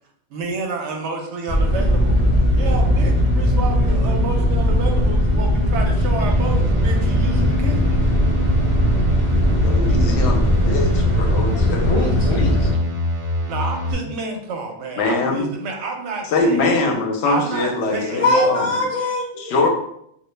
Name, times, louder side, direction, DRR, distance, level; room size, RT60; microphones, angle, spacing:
voice 1, 0.3-2.2 2.5-8.0 13.5-16.7 17.2-18.6, right 3 dB, 75° right, 2 dB, 0.8 m, -29 dB
sound 1, 1.5-12.7, equal, 30° left, 0.7 m, -18 dB
sound 2, 6.3-13.9, left 1 dB, 35° right, 0.6 m, -25 dB
voice 2, 9.6-11.9 12.4-12.7 15.0-15.5 16.3-18.8 19.4-19.7, left 3 dB, 70° left, 1 dB, 0.8 m, -23 dB
voice 3, 11.9-12.7 18.2-19.4, left 2 dB, 55° left, -5 dB, 0.3 m, -21 dB
2.2 x 2.0 x 3.1 m, 0.72 s
omnidirectional pair, 1.2 m